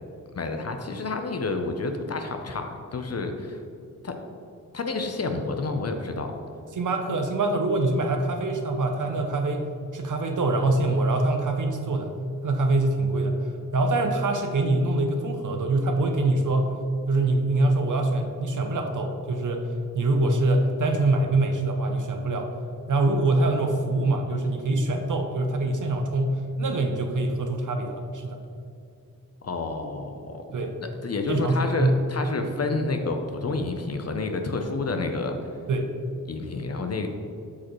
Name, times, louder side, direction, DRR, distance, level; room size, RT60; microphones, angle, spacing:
voice 1, 0.3-3.6 4.0-4.1 4.7-6.3 29.4-30.6 31.0-35.4 36.3-37.1, left 3 dB, 45° left, 5 dB, 0.7 m, -29 dB
voice 2, 6.7-12.2 12.4-16.8 17.1-19.6 19.9-22.5 22.9-28.4 30.5-30.8 31.3-32.0 35.7-35.9, right 2 dB, 65° right, 4 dB, 0.7 m, -24 dB
8.2 x 5.0 x 3.1 m, 2.5 s
cardioid pair, 60°, 34 cm